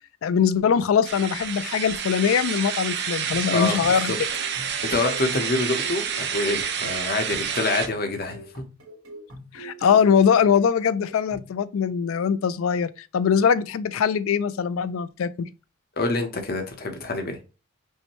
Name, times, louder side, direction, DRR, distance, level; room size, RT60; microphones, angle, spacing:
voice 1, 0.2-4.1 9.5-15.5, left 7 dB, 85° left, 0.4 m, -22 dB
sound 1, 1.0-7.9, right 7 dB, 55° right, 0.6 m, -29 dB
sound 2, 3.0-11.5, right 1 dB, 70° right, 2.3 m, -44 dB
voice 2, 3.5-4.0 4.8-8.6 16.0-17.4, left 2 dB, 50° left, 0.8 m, -26 dB
5.4 x 2.1 x 3.0 m
head